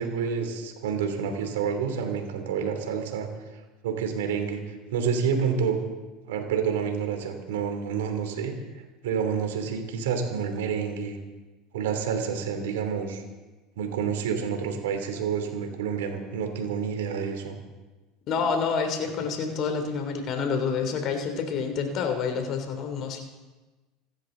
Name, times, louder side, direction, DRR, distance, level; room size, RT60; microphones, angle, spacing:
voice 1, 0.0-3.3 3.8-5.8 6.3-11.2 11.7-13.2 13.8-17.6, right 6 dB, 80° right, 5 dB, 3.1 m, -29 dB
voice 2, 18.3-23.2, left 5 dB, 50° left, 5 dB, 3.2 m, -28 dB
27.0 x 12.5 x 4.0 m, 1.2 s
hypercardioid pair, 80°, 0 cm